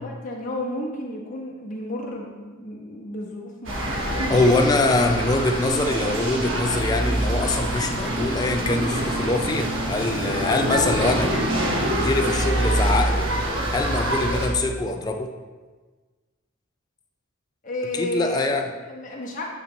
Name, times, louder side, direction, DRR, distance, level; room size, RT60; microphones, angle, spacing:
voice 1, 0.0-5.0 17.6-18.5 18.9-19.4, left 1 dB, 40° left, -2 dB, 1.1 m, -32 dB
sound 1, 3.6-14.5, right 1 dB, 70° right, 1.1 m, -25 dB
voice 2, 4.3-11.3 11.9-13.3 13.7-15.3 17.9-18.7, left 2 dB, 20° left, 4 dB, 0.3 m, -23 dB
9.1 x 3.3 x 4.1 m, 1.4 s
head